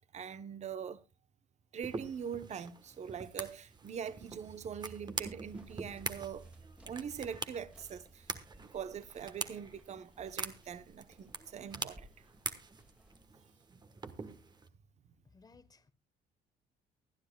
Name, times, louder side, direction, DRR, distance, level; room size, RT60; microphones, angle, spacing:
voice 1, 0.1-1.0 1.7-6.5 6.8-8.3 8.6-12.1 14.1-14.2, right 7 dB, 40° right, 0.9 m, -43 dB
sound 1, 1.8-14.7, right 4 dB, 25° right, 1.2 m, -45 dB
sound 2, 5.2-13.2, equal, 5° right, 2.0 m, -61 dB
voice 2, 15.2-15.9, left 4 dB, 20° left, 1.1 m, -60 dB
24.0 x 10.0 x 2.3 m
cardioid pair, 110°, 17 cm